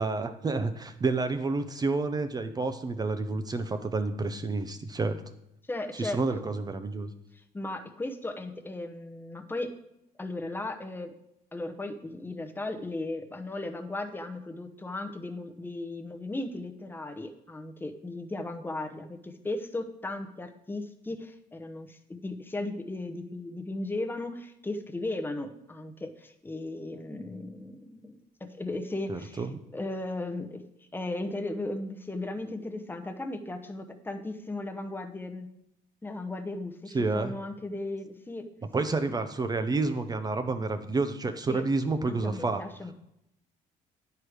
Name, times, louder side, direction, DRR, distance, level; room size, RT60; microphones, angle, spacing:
voice 1, 0.0-5.2 5.9-7.1 29.1-29.5 36.9-37.3 38.7-42.6, right 3 dB, 25° right, 8 dB, 0.5 m, -29 dB
voice 2, 5.7-6.4 7.5-9.7 10.2-11.1 11.5-28.2 28.6-29.5 29.7-30.7 30.9-35.5 36.0-38.5 38.8-38.9 41.5-41.6 42.1-42.9, left 2 dB, 10° left, 5 dB, 0.8 m, -36 dB
9.5 x 4.7 x 4.9 m, 0.82 s
cardioid pair, 110°, 17 cm